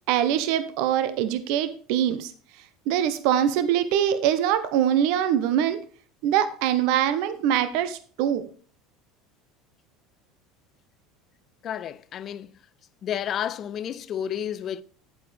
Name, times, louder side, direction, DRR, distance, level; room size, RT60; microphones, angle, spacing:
voice 1, 0.1-2.3 2.9-5.8 6.2-8.5, right 10 dB, 65° right, 0.8 m, -23 dB
voice 2, 11.6-12.6 13.0-14.8, left 9 dB, 45° left, 0.5 m, -31 dB
9.4 x 8.4 x 3.3 m
hypercardioid pair, 75°, 0 cm